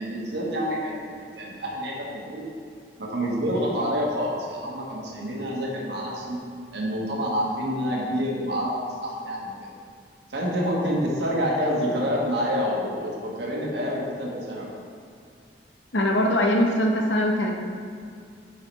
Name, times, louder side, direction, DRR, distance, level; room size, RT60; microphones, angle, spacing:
voice 1, 0.0-2.5 3.0-6.4 6.7-8.7 9.0-9.7 10.3-14.7, equal, 70° right, -3 dB, 1.3 m, -27 dB
voice 2, 15.9-17.5, left 1 dB, 80° left, 1 dB, 1.0 m, -21 dB
9.4 x 5.6 x 3.2 m, 2.3 s
head